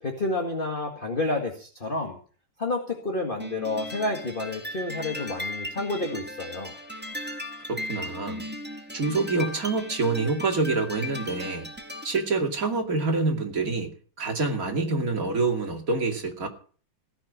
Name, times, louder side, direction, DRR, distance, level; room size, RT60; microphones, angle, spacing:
voice 1, 0.0-2.2 2.6-6.7, left 2 dB, 25° left, 1.9 m, -30 dB
sound 1, 3.4-12.3, left 1 dB, 5° right, 1.3 m, -37 dB
voice 2, 7.7-8.5 8.9-11.7 12.0-16.5, right 3 dB, 45° right, 2.8 m, -26 dB
17.0 x 5.9 x 9.6 m
omnidirectional pair, 2.2 m